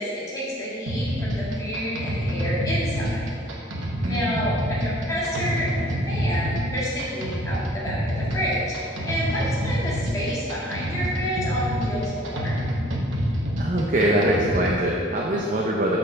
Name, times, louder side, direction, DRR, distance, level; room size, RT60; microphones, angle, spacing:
voice 1, 0.0-3.3 4.1-12.7, equal, 15° left, -9 dB, 1.8 m, -29 dB
sound 1, 0.9-14.8, equal, 85° right, 1.2 m, -27 dB
voice 2, 4.0-4.5 13.6-16.0, right 1 dB, 40° right, -3 dB, 0.8 m, -23 dB
6.3 x 5.5 x 6.7 m, 2.4 s
head